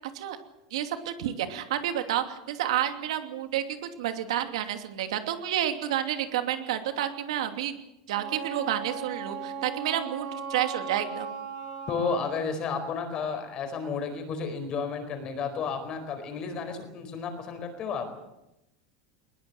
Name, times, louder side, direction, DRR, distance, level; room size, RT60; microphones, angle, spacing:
voice 1, 0.7-7.7 8.1-11.3, right 11 dB, 90° right, 7 dB, 2.8 m, -30 dB
Wind instrument woodwind instrument, 8.1-12.4, right 5 dB, 50° right, 7.0 m, -37 dB
voice 2, 11.9-18.2, left 5 dB, 25° left, 7 dB, 4.5 m, -32 dB
21.0 x 20.5 x 7.9 m, 0.89 s
supercardioid pair, 175°, 3 cm